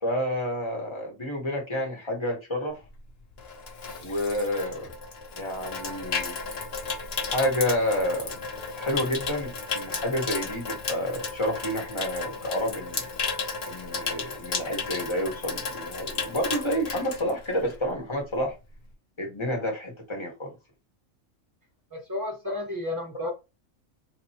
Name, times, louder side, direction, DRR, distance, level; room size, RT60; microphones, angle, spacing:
voice 1, 0.0-2.8 4.0-4.9 5.3-6.4 7.3-8.4 8.8-13.0 13.6-18.5 19.2-20.5 22.5-22.6 23.2-23.3, equal, 20° left, 1.3 m, -29 dB
Water tap faucet / Sink (filling or washing), 2.9-17.9 18.2-18.5, left 4 dB, 55° left, 1.1 m, -34 dB
voice 2, 21.9-23.3, left 2 dB, 15° right, 1.0 m, -32 dB
4.1 x 3.0 x 2.8 m
omnidirectional pair, 1.4 m